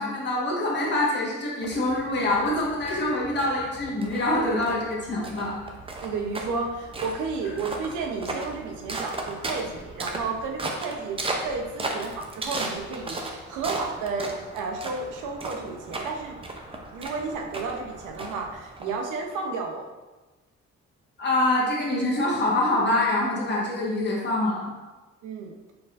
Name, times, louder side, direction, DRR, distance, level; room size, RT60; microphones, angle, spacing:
voice 1, 0.0-5.6 21.2-24.6, left 1 dB, 35° left, -5 dB, 1.3 m, -25 dB
sound 1, 1.6-19.3, right 2 dB, 20° right, 0.5 m, -36 dB
voice 2, 6.0-16.4 16.9-19.8 25.2-25.5, right 4 dB, 90° right, 2 dB, 0.7 m, -32 dB
4.6 x 4.0 x 2.5 m, 1.2 s
cardioid pair, 90°, 30 cm